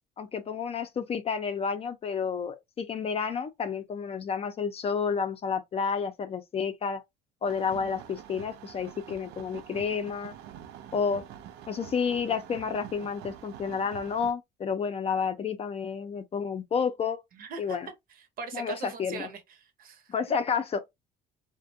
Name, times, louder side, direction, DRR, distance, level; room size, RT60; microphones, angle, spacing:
voice 1, 0.2-7.0 7.4-10.3 10.9-11.2 11.7-17.2 17.6-17.9 18.5-19.3 20.1-20.8, left 6 dB, 35° left, 0.5 m, -30 dB
sound 1, 7.4-14.3, right 10 dB, 85° right, 0.4 m, -46 dB
voice 2, 17.3-17.8 18.1-20.1, right 5 dB, 60° right, 0.8 m, -41 dB
2.4 x 2.2 x 2.6 m
cardioid pair, 110°, 17 cm